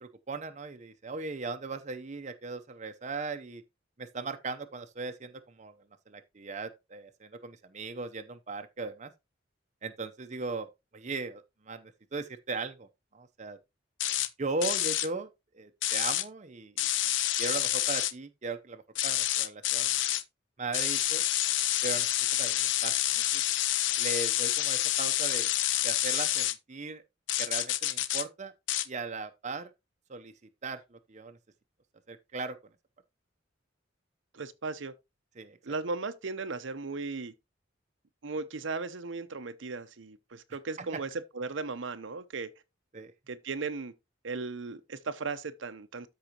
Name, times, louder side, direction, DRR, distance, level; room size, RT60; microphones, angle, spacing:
voice 1, 0.0-3.6 4.0-5.7 6.1-9.1 9.8-10.7 10.9-13.6 14.4-15.3 15.5-20.0 20.6-21.2 21.8-23.4 24.0-25.5 25.8-27.0 27.4-28.5 28.9-29.7 30.1-30.3 30.6-31.4 32.1-32.6 35.4-35.6 40.8-40.9 42.9-43.1, right 3 dB, 40° right, 0.7 m, -38 dB
sound 1, 14.0-14.3 14.6-15.1 15.8-16.2 16.8-18.1 18.9-20.2 20.7-26.5 27.3-28.2 28.7-28.9, left 14 dB, 70° left, 0.5 m, -28 dB
voice 2, 34.3-34.9 35.6-37.3 38.2-42.5 43.3-43.9 44.2-46.1, right 4 dB, 80° right, 0.7 m, -36 dB
13.0 x 4.8 x 2.9 m
head